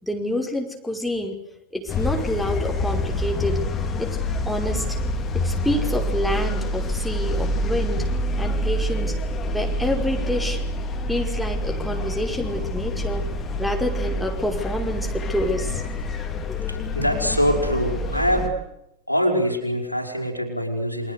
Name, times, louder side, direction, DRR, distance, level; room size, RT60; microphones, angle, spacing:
voice 1, 0.0-1.4 1.7-3.6 4.0-4.2 4.5-5.0 5.3-8.0 8.4-9.1 9.5-10.6 11.1-13.2 13.6-15.8 16.5-16.6, left 1 dB, ahead, 1 dB, 5.4 m, -27 dB
sound 1, 1.9-18.5, left 1 dB, 25° left, 4.5 m, -26 dB
voice 2, 16.7-18.6 19.1-21.1, equal, 90° left, 1 dB, 5.7 m, -24 dB
29.0 x 25.5 x 6.9 m, 0.83 s
figure-of-eight pair, 90°, 0 cm